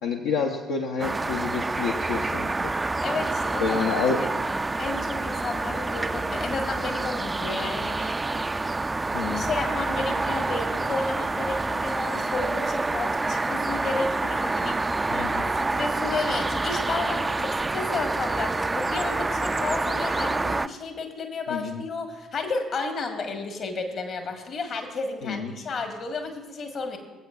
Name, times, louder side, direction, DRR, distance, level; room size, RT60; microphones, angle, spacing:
voice 1, 0.0-2.5 3.6-4.2 9.1-9.5 15.1-15.5 21.5-21.8 25.2-25.5, left 5 dB, 65° left, 1 dB, 0.7 m, -28 dB
sound 1, 1.0-20.7, right 3 dB, 20° right, 0.3 m, -27 dB
voice 2, 3.0-3.8 4.2-4.3 4.8-8.1 9.1-14.8 15.5-27.0, left 3 dB, 50° left, 5 dB, 1.4 m, -32 dB
21.5 x 8.0 x 2.4 m, 1.2 s
figure-of-eight pair, 50°, 0 cm